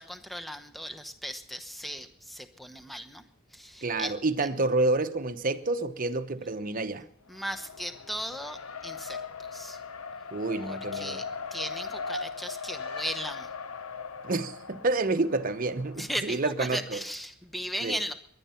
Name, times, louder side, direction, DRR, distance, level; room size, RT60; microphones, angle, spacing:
voice 1, 0.0-3.2 3.5-4.1 7.3-9.8 10.6-11.2 11.5-13.5 16.0-18.1, equal, ahead, 0.9 m, -37 dB
voice 2, 3.8-7.0 10.3-11.2 14.2-17.0 17.8-18.0, right 2 dB, 40° right, 0.9 m, -29 dB
Race car auto racing, 7.3-16.4, left 5 dB, 85° left, 0.8 m, -39 dB
20.0 x 11.5 x 5.7 m
head